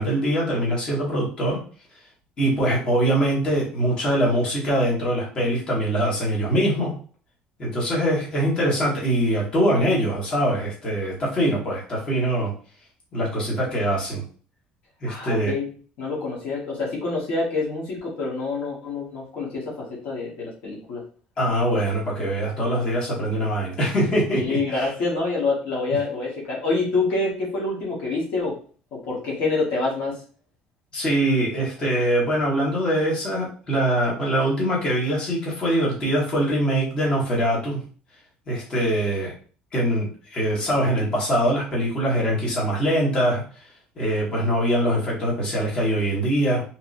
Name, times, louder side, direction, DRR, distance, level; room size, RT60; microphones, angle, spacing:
voice 1, 0.0-1.6 2.4-6.9 7.6-12.5 13.1-14.2 15.0-15.5 21.4-24.9 30.9-37.8 38.5-39.3 39.7-43.7 44.0-46.6, right 1 dB, 35° left, -5 dB, 1.3 m, -23 dB
voice 2, 15.1-15.7 16.0-21.0 24.3-28.6 28.9-30.2, left 3 dB, 65° left, -4 dB, 1.1 m, -26 dB
3.0 x 2.7 x 2.6 m, 0.42 s
cardioid pair, 135°, 3 cm